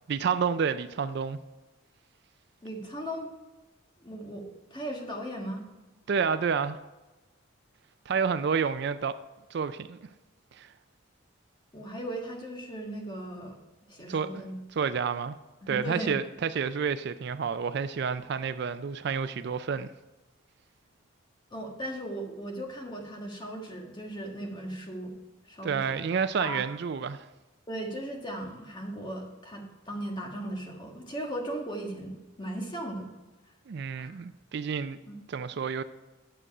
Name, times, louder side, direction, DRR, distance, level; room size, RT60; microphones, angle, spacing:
voice 1, 0.1-1.4 6.1-6.8 8.1-9.2 9.5-10.0 10.5-10.7 14.1-14.3 14.8-15.4 15.7-19.9 25.6-27.3 33.7-35.0 35.3-35.8, right 6 dB, 50° right, 0.3 m, -29 dB
voice 2, 2.6-3.3 4.0-5.6 11.7-13.6 13.9-14.6 15.6-16.1 21.5-25.1 25.4-26.0 26.4-26.6 27.7-33.1 34.0-34.2 35.1-35.2, right 1 dB, 20° left, 1.4 m, -37 dB
9.9 x 6.7 x 4.9 m
head